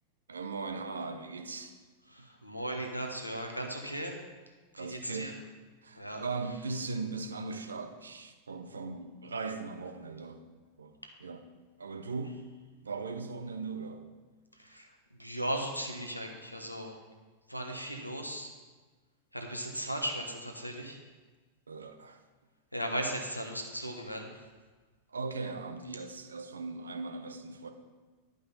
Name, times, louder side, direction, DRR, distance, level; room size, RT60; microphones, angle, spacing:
voice 1, 0.3-1.7 2.2-2.3 4.7-5.4 5.8-10.4 10.8-11.4 11.8-12.4 12.8-14.1 21.7-22.2 25.1-27.7, right 4 dB, 75° right, 7 dB, 0.7 m, -39 dB
voice 2, 2.1-4.2 4.7-5.3 5.9-6.2 14.6-17.0 17.5-18.5 19.3-21.0 22.7-24.3, right 1 dB, 90° left, 3 dB, 1.1 m, -37 dB
11.5 x 5.3 x 5.4 m, 1.3 s
figure-of-eight pair, 90°, 0 cm